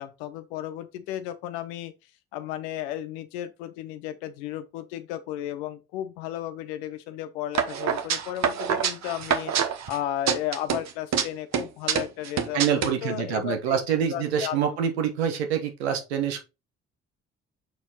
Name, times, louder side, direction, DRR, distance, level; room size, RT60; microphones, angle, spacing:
voice 1, 0.0-1.9 2.3-9.5 9.9-14.6, left 12 dB, 80° left, 0.9 m, -34 dB
sound 1, 7.5-10.0 10.3-11.2 11.5-12.9, right 8 dB, 60° right, 1.2 m, -26 dB
voice 2, 12.5-16.4, right 8 dB, 90° right, 1.3 m, -26 dB
7.0 x 4.5 x 4.1 m
hypercardioid pair, 45°, 31 cm